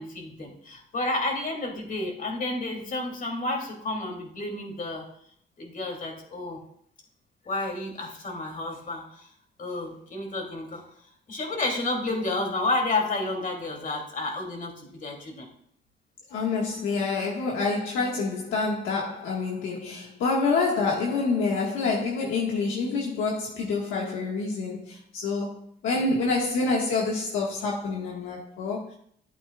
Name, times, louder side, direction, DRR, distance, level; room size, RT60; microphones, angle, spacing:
voice 1, 0.0-5.1 5.6-6.6 7.4-9.3 9.6-10.8 11.3-15.5, left 2 dB, 45° left, 1 dB, 2.7 m, -31 dB
voice 2, 16.3-29.0, left 4 dB, 85° left, -3 dB, 1.5 m, -27 dB
12.5 x 8.6 x 2.3 m, 0.64 s
cardioid pair, 90°, 20 cm